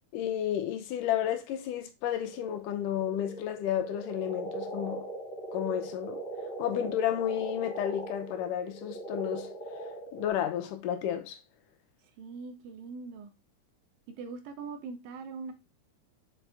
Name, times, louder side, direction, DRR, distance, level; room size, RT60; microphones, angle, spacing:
voice 1, 0.1-5.1 5.5-6.2 6.6-9.5 10.1-11.4, left 10 dB, 75° left, 2.2 m, -32 dB
sound 1, 2.2-10.3, right 2 dB, 25° left, 2.2 m, -40 dB
voice 2, 12.2-13.3 14.2-15.5, right 4 dB, 80° right, 2.6 m, -41 dB
6.0 x 5.1 x 3.3 m
omnidirectional pair, 4.0 m